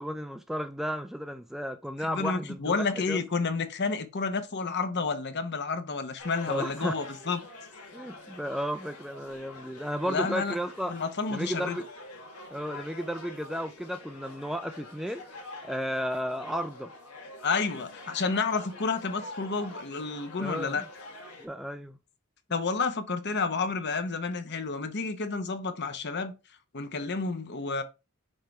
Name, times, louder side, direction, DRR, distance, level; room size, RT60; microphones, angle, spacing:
voice 1, 0.0-2.8 3.1-3.2 6.5-6.9 7.9-10.9 11.3-11.8 12.5-15.2 15.6-16.9 20.4-20.8 21.4-22.0, equal, ahead, 0.3 m, -33 dB
voice 2, 2.0-7.4 10.1-10.5 10.9-11.8 17.4-20.8 22.5-26.3 26.7-27.8, left 4 dB, 50° left, 0.8 m, -30 dB
sound 1, 6.2-21.5, left 2 dB, 90° left, 1.5 m, -46 dB
6.5 x 3.3 x 4.7 m
head